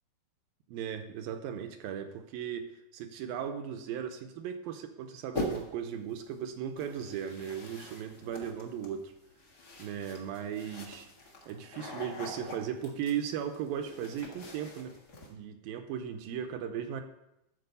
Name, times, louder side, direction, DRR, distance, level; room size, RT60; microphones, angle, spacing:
voice 1, 0.7-9.1 9.8-11.1 11.5-15.0 15.3-17.0, right 8 dB, 75° right, 7 dB, 2.3 m, -37 dB
sound 1, 5.3-5.9 6.8-15.3, left 1 dB, 70° left, 0.9 m, -43 dB
13.0 x 4.5 x 6.8 m, 0.86 s
omnidirectional pair, 4.6 m